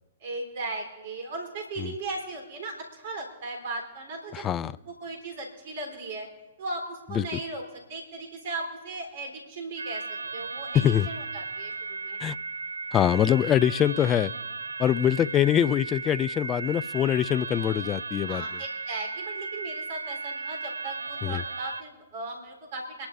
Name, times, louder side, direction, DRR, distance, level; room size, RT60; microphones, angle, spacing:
voice 1, 0.2-4.4 4.9-6.3 6.6-7.6 7.9-12.2 18.3-23.1, right 2 dB, 50° right, 3 dB, 3.8 m, -37 dB
voice 2, 4.3-4.7 7.2-7.4 10.7-11.1 12.2-12.3 12.9-14.3 14.8-18.4 21.2-21.4, left 10 dB, 25° left, 19 dB, 0.3 m, -24 dB
sound 1, 9.8-21.8, right 4 dB, 80° right, 0.3 m, -36 dB
26.5 x 11.5 x 2.6 m, 1.2 s
figure-of-eight pair, 115°, 0 cm